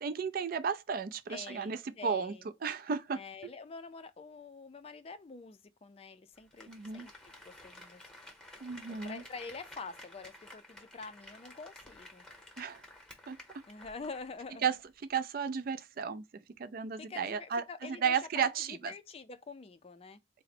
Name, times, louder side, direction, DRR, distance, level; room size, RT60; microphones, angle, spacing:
voice 1, 0.0-3.2 6.7-7.1 8.6-9.2 12.6-12.8 13.3-13.4 14.6-14.8 15.1-16.2 16.6-18.9, right 6 dB, 50° right, 0.4 m, -34 dB
voice 2, 1.3-2.4 3.1-7.1 7.4-8.0 8.9-12.2 13.7-14.7 17.0-20.2, left 4 dB, 30° left, 0.4 m, -46 dB
Applause, 6.4-14.6 14.9-15.0, left 1 dB, 5° left, 0.9 m, -53 dB
3.8 x 2.1 x 4.1 m
head